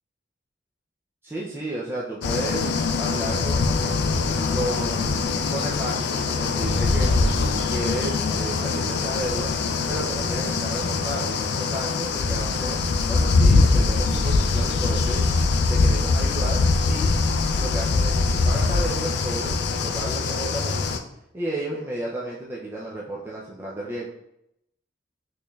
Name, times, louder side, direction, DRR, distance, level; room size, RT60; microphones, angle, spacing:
voice 1, 1.2-3.8 4.5-9.5 9.9-15.2 15.7-16.6 16.9-17.2 17.6-20.9 21.3-24.1, right 1 dB, 10° right, -5 dB, 0.4 m, -33 dB
sound 1, 2.2-21.0, left 3 dB, 60° left, 0.3 m, -23 dB
4.3 x 3.2 x 2.3 m, 0.82 s
head